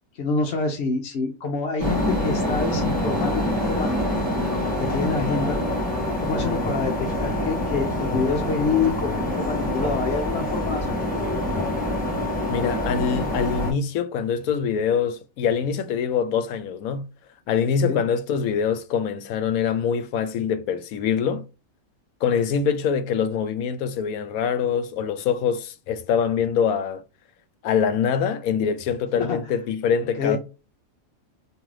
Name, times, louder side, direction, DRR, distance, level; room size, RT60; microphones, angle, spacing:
voice 1, 0.2-4.1 4.7-5.6 6.2-11.0 17.8-18.0 29.2-29.4 30.2-30.4, left 4 dB, 55° left, 0.8 m, -27 dB
sound 1, 1.8-13.7, left 1 dB, 5° left, 1.8 m, -25 dB
voice 2, 12.5-17.0 17.5-21.4 22.2-27.0 27.6-30.4, left 7 dB, 80° left, 1.0 m, -24 dB
3.7 x 3.0 x 3.2 m
omnidirectional pair, 1.5 m